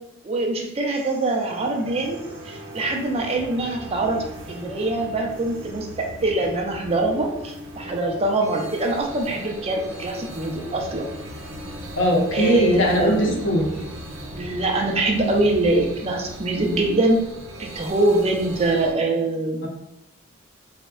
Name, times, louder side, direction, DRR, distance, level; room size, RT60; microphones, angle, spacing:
voice 1, 0.2-11.1 12.3-13.4 14.3-17.2 17.6-19.7, right 2 dB, 30° right, 2 dB, 0.4 m, -24 dB
sound 1, 0.9-18.9, equal, 85° right, 0.6 m, -38 dB
voice 2, 11.9-13.7 19.6-19.7, equal, 65° left, -1 dB, 0.6 m, -20 dB
3.4 x 2.1 x 2.3 m, 0.87 s
head